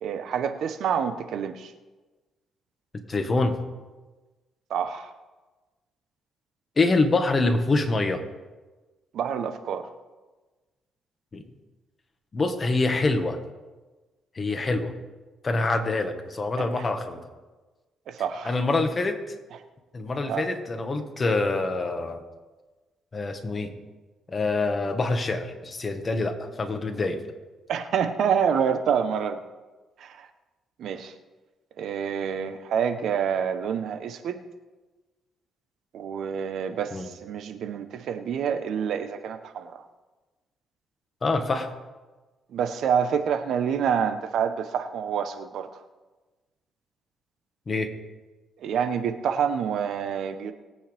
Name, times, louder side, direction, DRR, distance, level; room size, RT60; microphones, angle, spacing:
voice 1, 0.0-1.7 4.7-5.1 9.1-9.9 16.6-16.8 18.1-18.6 20.3-20.5 27.7-29.4 30.0-30.3 30.8-31.1 31.8-34.4 35.9-39.8 42.5-45.7 48.6-50.5, right 7 dB, 70° right, 9 dB, 1.0 m, -27 dB
voice 2, 3.1-3.6 6.8-8.2 11.3-11.4 12.3-13.4 14.3-14.9 15.4-17.2 18.4-19.2 19.9-22.2 23.1-23.7 24.3-27.2 36.9-37.1 41.2-41.7 47.7-47.9, left 3 dB, 35° left, 6 dB, 1.6 m, -25 dB
21.0 x 8.6 x 3.5 m, 1.2 s
cardioid pair, 90°, 0 cm